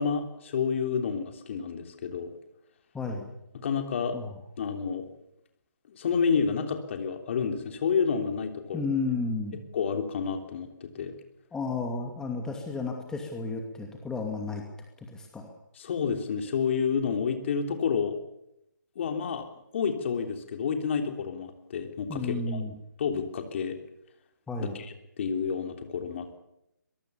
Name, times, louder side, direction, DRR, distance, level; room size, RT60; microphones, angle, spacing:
voice 1, 0.0-2.3 3.5-4.2 4.6-5.1 5.9-8.8 9.7-11.1 15.8-18.2 18.9-19.5 19.7-22.6 23.0-23.8 24.7-26.4, left 6 dB, 40° left, 5 dB, 3.3 m, -29 dB
voice 2, 2.9-3.3 4.1-4.3 8.7-9.6 11.5-14.6 15.1-15.5 22.1-22.7 24.5-24.8, left 3 dB, 5° left, 2 dB, 2.5 m, -32 dB
23.5 x 21.5 x 7.1 m, 0.83 s
figure-of-eight pair, 145°, 11 cm